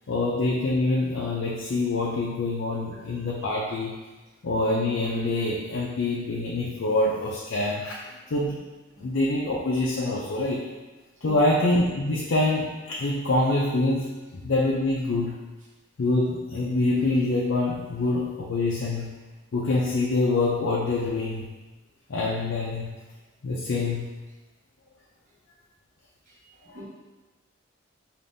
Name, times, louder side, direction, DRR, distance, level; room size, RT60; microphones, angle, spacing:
voice 1, 0.1-3.9 4.4-8.0 8.3-8.6 9.0-10.7 11.2-15.3 16.0-19.1 19.5-21.5 22.1-22.9 23.4-24.1 26.7-26.9, left 2 dB, 70° left, -3 dB, 0.5 m, -25 dB
voice 2, 2.9-3.1 9.0-9.1 11.2-11.5 26.7-26.9, left 1 dB, 40° right, -7 dB, 0.7 m, -40 dB
5.1 x 2.5 x 2.6 m, 1.2 s
head